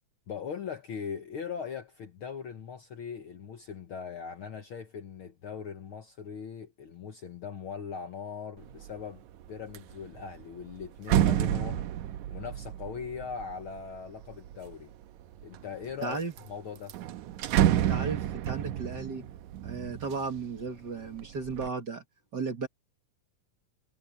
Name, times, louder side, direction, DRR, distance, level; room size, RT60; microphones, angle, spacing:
voice 1, 0.3-9.2 9.5-11.9 12.3-14.9 15.4-16.2 16.4-16.9, left 6 dB, 60° left, 1.6 m, -40 dB
sound 1, 8.7-9.0 9.4-14.7 15.4-16.0 16.4-16.5 16.8-20.7 21.1-21.7, right 11 dB, 80° right, 2.2 m, -30 dB
voice 2, 16.0-16.3 17.7-19.2 19.6-22.0 22.3-22.7, right 4 dB, 40° right, 2.0 m, -35 dB
omnidirectional pair, 3.4 m